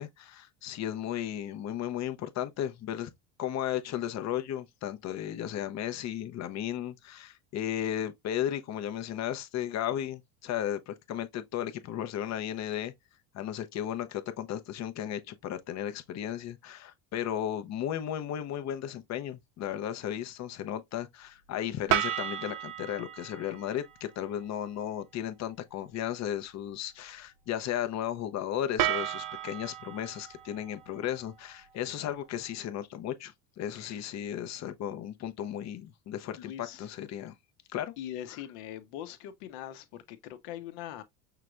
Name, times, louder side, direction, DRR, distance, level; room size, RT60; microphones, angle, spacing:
voice 1, 0.0-3.1 3.4-12.9 13.3-37.3 37.7-37.9, left 11 dB, 40° left, 0.7 m, -35 dB
sound 1, 21.9-24.0 28.8-32.0, right 12 dB, 55° right, 0.8 m, -33 dB
voice 2, 33.7-34.1 36.4-36.9 38.0-41.0, left 11 dB, 75° left, 1.0 m, -42 dB
5.8 x 3.2 x 2.4 m
supercardioid pair, 120°, 40 cm